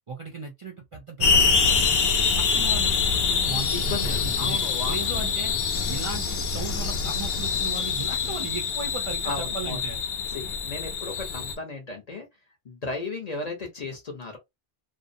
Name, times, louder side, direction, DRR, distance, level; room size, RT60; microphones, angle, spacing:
voice 1, 0.1-2.0 2.4-4.6 4.9-5.5 5.9-10.0, right 3 dB, 45° right, 0.4 m, -36 dB
sound 1, 1.2-11.5, left 5 dB, 75° left, 0.8 m, -25 dB
voice 2, 2.3-2.7 3.7-5.2 9.2-9.8 10.3-12.3 12.6-14.4, left 3 dB, 45° left, 0.7 m, -35 dB
2.5 x 2.0 x 2.5 m
omnidirectional pair, 1.1 m